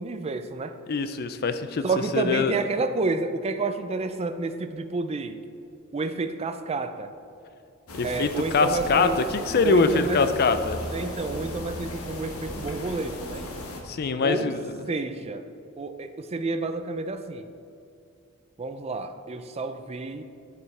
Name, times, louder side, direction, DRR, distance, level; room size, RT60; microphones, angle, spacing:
voice 1, 0.0-0.8 1.8-5.4 5.9-7.1 8.0-9.3 9.6-10.2 10.9-13.5 14.2-15.5 15.8-17.5 18.6-20.2, right 3 dB, 30° right, 9 dB, 0.4 m, -30 dB
voice 2, 0.9-1.8 2.1-2.6 7.9-10.8 13.9-14.6, left 4 dB, 45° left, 10 dB, 0.4 m, -23 dB
sound 1, 7.9-13.8, left 1 dB, 75° left, 1.2 m, -36 dB
10.5 x 7.0 x 3.3 m, 2.6 s
head